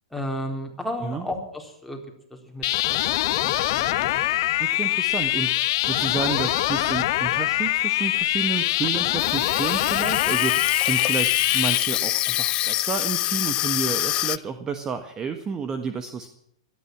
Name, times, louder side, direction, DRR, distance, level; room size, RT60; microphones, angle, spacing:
voice 1, 0.1-2.0 2.3-4.2, left 1 dB, ahead, 1 dB, 3.9 m, -34 dB
sound 1, 2.6-11.8, left 16 dB, 50° left, 1.0 m, -24 dB
voice 2, 4.6-16.3, right 5 dB, 20° right, 8 dB, 1.4 m, -31 dB
Water tap faucet / Sink (filling or washing), 9.2-14.4, left 16 dB, 35° left, 0.6 m, -25 dB
17.5 x 13.0 x 5.9 m, 0.72 s
figure-of-eight pair, 110°, 3 cm